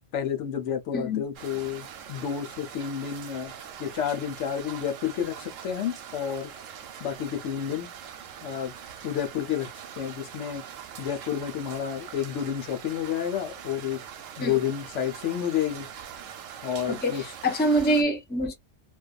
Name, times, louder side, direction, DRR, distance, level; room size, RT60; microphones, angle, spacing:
voice 1, 0.1-3.5 3.8-6.5 7.0-7.9 8.4-8.7 9.0-9.7 10.0-10.6 11.0-14.0 14.4-15.9 16.6-17.2, left 9 dB, 75° left, 1.0 m, -30 dB
voice 2, 0.9-1.2 14.4-14.6 16.9-18.5, equal, 10° left, 0.5 m, -25 dB
sound 1, 1.4-18.0, right 9 dB, 90° right, 1.0 m, -43 dB
2.5 x 2.3 x 2.3 m
omnidirectional pair, 1.3 m